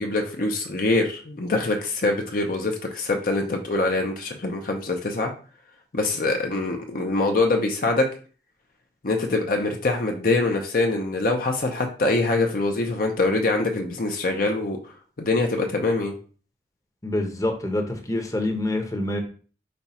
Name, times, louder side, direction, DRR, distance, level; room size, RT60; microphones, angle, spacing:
voice 1, 0.0-5.3 5.9-8.1 9.0-14.8 15.2-16.1, left 2 dB, 55° left, 3 dB, 0.7 m, -24 dB
voice 2, 17.0-19.2, left 1 dB, 20° left, 4 dB, 0.8 m, -26 dB
5.3 x 2.4 x 4.2 m, 0.39 s
head